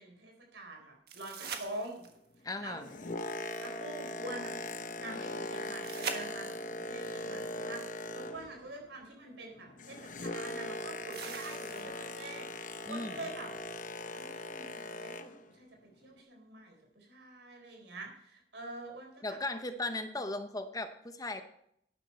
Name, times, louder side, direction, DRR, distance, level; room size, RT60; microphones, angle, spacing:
voice 1, 0.0-2.0 2.4-2.8 3.0-3.2 3.6-4.5 5.0-13.5 14.1-15.3 15.5-15.7 16.0-19.4, right 2 dB, 85° right, 2 dB, 4.1 m, -46 dB
sound 1, 1.1-2.4 5.8-6.8 8.7-8.8 11.1-12.1 15.1-15.2, right 6 dB, 60° right, 1.4 m, -42 dB
voice 2, 2.4-2.9 12.9-13.2 19.2-21.4, left 2 dB, 20° left, 8 dB, 0.9 m, -37 dB
Boat Water vehicle, 2.6-8.7 9.0-15.5 16.1-16.2, left 2 dB, 45° left, 0.9 m, -40 dB
12.0 x 9.9 x 4.4 m, 0.71 s
head